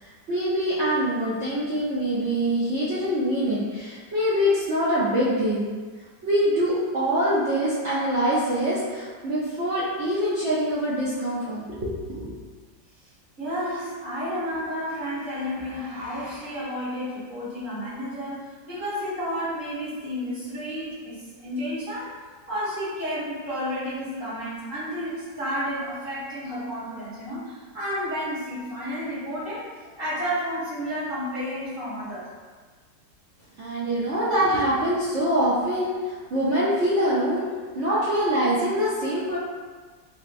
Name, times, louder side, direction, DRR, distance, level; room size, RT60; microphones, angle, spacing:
voice 1, 0.0-5.7 6.2-12.3 33.6-37.5 37.7-39.4, equal, 75° right, -10 dB, 0.6 m, -24 dB
voice 2, 13.4-22.2 22.5-32.3, equal, 30° right, -11 dB, 1.3 m, -31 dB
3.2 x 2.8 x 2.5 m, 1.5 s
omnidirectional pair, 2.0 m